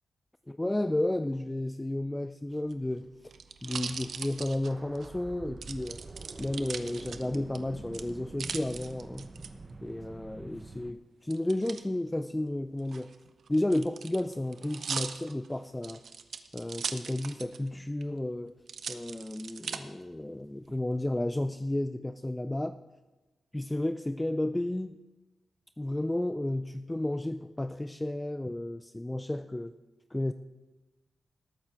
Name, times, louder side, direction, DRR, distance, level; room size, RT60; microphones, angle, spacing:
voice 1, 0.5-3.1 3.6-6.0 6.4-9.3 9.8-13.1 13.5-16.0 16.5-18.5 18.9-22.8 23.5-25.0 25.8-29.8 30.1-30.3, left 1 dB, 15° left, 10 dB, 0.4 m, -32 dB
sound 1, 2.6-5.1 5.6-7.6 7.9-9.5 11.3-11.8 12.8-17.7 18.0-18.1 18.7-19.8 20.4-21.0, right 6 dB, 70° right, 0.7 m, -40 dB
sound 2, 4.6-10.9, right 3 dB, 35° right, 0.8 m, -46 dB
19.5 x 8.8 x 3.4 m, 1.2 s
cardioid pair, 80°, 0 cm